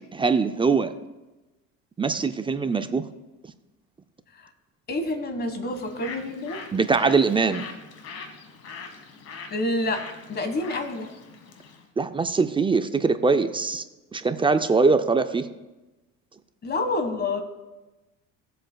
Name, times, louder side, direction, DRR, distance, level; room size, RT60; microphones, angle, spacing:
voice 1, 0.1-0.9 2.0-3.0 6.7-7.6 12.0-13.8 14.1-15.5, right 4 dB, 15° right, 9 dB, 0.4 m, -22 dB
voice 2, 4.9-6.6 9.5-11.1 16.6-17.4, left 2 dB, 30° left, 7 dB, 1.5 m, -28 dB
Bird, 5.7-11.8, left 5 dB, 50° left, 1.4 m, -42 dB
19.5 x 7.7 x 2.3 m, 1.1 s
supercardioid pair, 110°, 32 cm